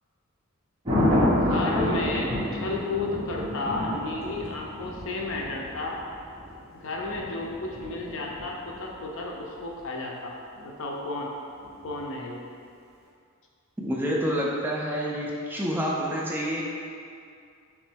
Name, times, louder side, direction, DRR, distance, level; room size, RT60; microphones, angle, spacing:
Thunder, 0.8-8.9 11.6-12.0, left 1 dB, 25° right, 0.8 m, -29 dB
voice 1, 1.3-6.0 6.7-11.3 11.8-12.4, left 2 dB, 60° left, -1 dB, 0.5 m, -32 dB
voice 2, 13.8-16.6, equal, 10° right, -4 dB, 0.3 m, -28 dB
3.6 x 3.1 x 3.4 m, 2.4 s
head